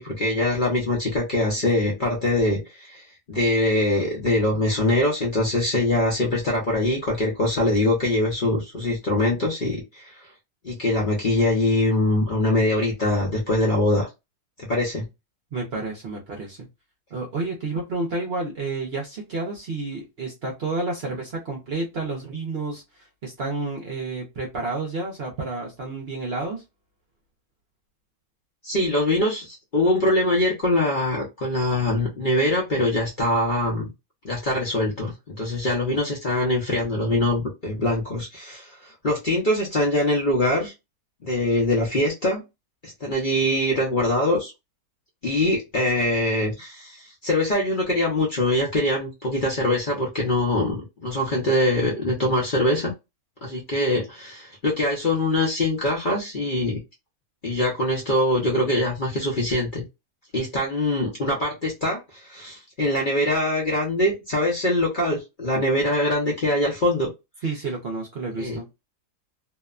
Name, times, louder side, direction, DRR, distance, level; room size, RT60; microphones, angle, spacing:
voice 1, 0.0-10.1 10.6-14.1 14.6-15.0 28.6-33.9 34.2-40.7 41.2-42.4 42.8-44.5 45.2-52.9 53.4-56.8 57.4-59.8 60.3-67.1 68.4-68.6, left 1 dB, 45° left, 0.7 m, -23 dB
voice 2, 15.5-16.7 17.1-22.8 23.2-26.6 67.4-68.7, right 3 dB, 55° right, 0.7 m, -30 dB
2.8 x 2.1 x 2.3 m
omnidirectional pair, 1.6 m